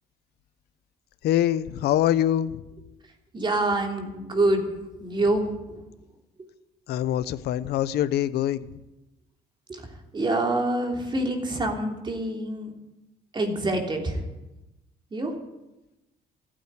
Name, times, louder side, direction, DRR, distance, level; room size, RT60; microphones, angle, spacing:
voice 1, 1.2-2.6 6.9-8.7, left 12 dB, 75° left, 15 dB, 0.8 m, -24 dB
voice 2, 3.3-5.8 6.4-6.5 9.7-12.7 13.3-14.3 15.1-15.4, right 2 dB, 30° right, 2 dB, 3.2 m, -26 dB
15.0 x 8.9 x 9.5 m, 0.99 s
cardioid pair, 110°, 17 cm